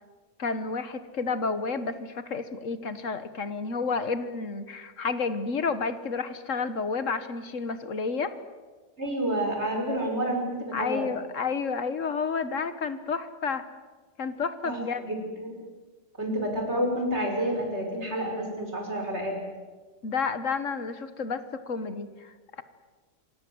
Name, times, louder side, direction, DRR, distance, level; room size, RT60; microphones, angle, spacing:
voice 1, 0.4-8.3 10.7-13.7 14.2-15.2 20.0-22.6, left 4 dB, 70° left, 12 dB, 1.7 m, -31 dB
voice 2, 9.0-11.1 14.6-15.6 16.2-19.4, right 1 dB, 55° right, 2 dB, 6.1 m, -29 dB
27.0 x 25.0 x 7.9 m, 1.4 s
omnidirectional pair, 1.4 m